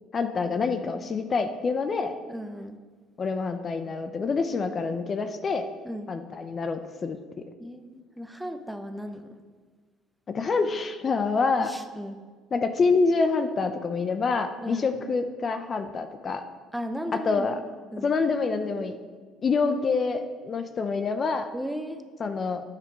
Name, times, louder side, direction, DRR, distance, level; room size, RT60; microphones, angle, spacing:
voice 1, 0.1-2.1 3.2-5.7 6.1-7.4 10.3-11.7 12.5-16.4 17.3-17.6 18.0-19.0 19.4-21.5 22.2-22.6, left 4 dB, 40° left, 8 dB, 0.7 m, -26 dB
voice 2, 2.3-2.8 5.8-6.1 7.6-9.3 11.6-12.2 14.6-14.9 16.7-17.5 17.9-18.1 21.5-22.0, equal, 5° right, 8 dB, 0.8 m, -35 dB
9.0 x 7.7 x 4.7 m, 1.5 s
supercardioid pair, 70°, 0 cm